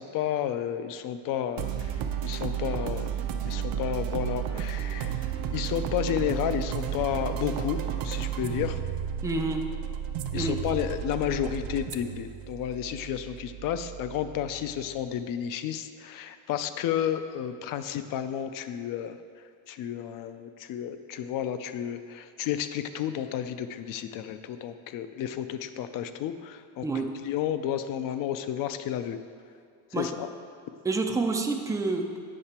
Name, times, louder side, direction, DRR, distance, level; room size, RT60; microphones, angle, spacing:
voice 1, 0.0-3.1 3.4-8.8 10.3-19.2 19.7-26.9 27.2-29.2 29.9-30.3, left 10 dB, 55° left, 11 dB, 0.5 m, -32 dB
sound 1, 1.6-15.0, right 9 dB, 60° right, 0.6 m, -33 dB
voice 2, 9.2-9.6 10.3-10.6 26.8-27.1 29.9-30.1 30.8-32.2, right 3 dB, 10° right, 3 dB, 0.3 m, -28 dB
8.7 x 5.8 x 4.3 m, 2.2 s
cardioid pair, 150°, 40 cm